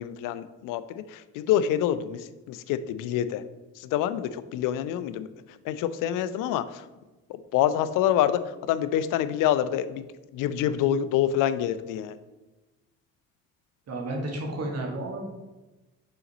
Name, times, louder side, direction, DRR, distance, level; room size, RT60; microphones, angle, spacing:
voice 1, 0.0-3.4 3.8-6.8 7.3-10.1 10.3-12.2, left 11 dB, 75° left, 13 dB, 0.5 m, -27 dB
voice 2, 13.9-15.2, right 1 dB, 50° right, 0 dB, 1.7 m, -32 dB
5.7 x 4.0 x 4.2 m, 1.1 s
supercardioid pair, 65°, 32 cm